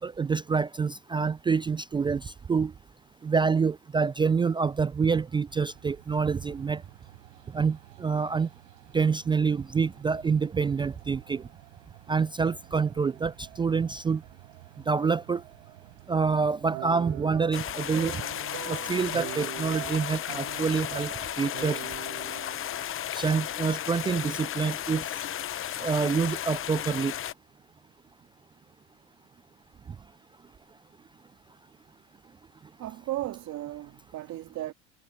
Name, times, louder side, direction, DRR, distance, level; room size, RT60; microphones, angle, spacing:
voice 1, 0.0-2.7 3.2-6.8 7.5-8.5 8.9-11.5 12.1-14.2 14.8-15.4 16.1-18.2 18.7-21.8 23.1-25.2 25.8-27.2 29.9-30.0, right 5 dB, 15° right, 0.3 m, -27 dB
sound 1, 5.5-18.4, right 18 dB, 85° right, 4.4 m, -53 dB
sound 2, 16.7-23.1, right 23 dB, 65° right, 1.3 m, -41 dB
sound 3, 17.5-27.3, left 11 dB, 35° left, 1.1 m, -34 dB
voice 2, 32.8-34.7, right 15 dB, 50° right, 2.7 m, -35 dB
supercardioid pair, 95°, 36 cm